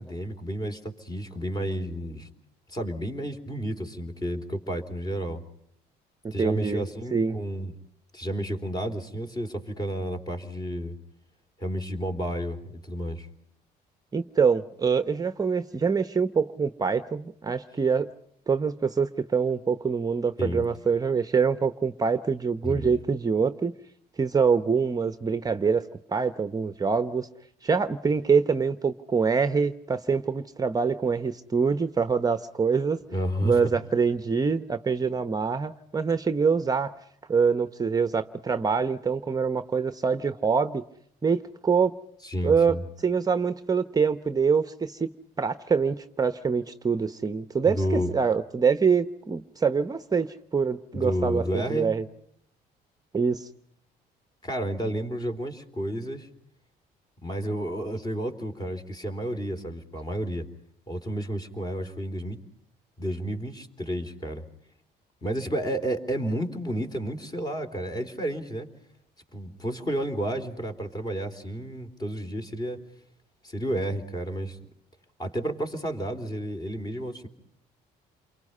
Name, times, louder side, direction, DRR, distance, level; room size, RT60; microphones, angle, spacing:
voice 1, 0.0-2.3 2.7-5.4 6.3-7.7 8.1-11.0 11.6-13.3 20.4-20.6 22.6-22.9 33.1-33.8 42.2-42.8 47.6-48.1 50.9-51.9 54.4-56.3 57.2-60.5 60.9-62.4 63.0-64.4 65.2-68.7 69.3-72.8 73.4-74.6 75.2-77.3, right 1 dB, 25° left, 6 dB, 3.7 m, -31 dB
voice 2, 6.2-6.8 7.1-7.4 14.1-18.1 18.5-23.7 24.2-25.8 26.1-27.3 27.6-33.0 33.4-36.9 37.3-40.8 41.2-41.9 42.4-42.7 43.0-45.1 45.4-52.0 53.1-53.5, right 5 dB, 20° right, 10 dB, 0.9 m, -25 dB
29.0 x 23.5 x 5.5 m, 0.72 s
cardioid pair, 110°, 17 cm